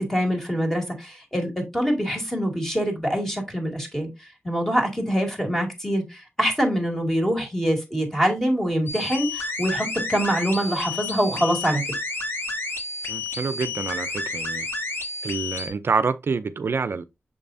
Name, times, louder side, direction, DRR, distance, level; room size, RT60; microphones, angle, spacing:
voice 1, 0.0-4.1 4.4-11.8, equal, 10° left, 2.1 m, -24 dB
sound 1, 8.9-15.7, left 3 dB, 60° left, 1.6 m, -30 dB
voice 2, 13.1-14.7 15.2-17.0, right 5 dB, 65° right, 0.4 m, -27 dB
6.8 x 5.4 x 2.6 m
wide cardioid pair, 110°, 4 cm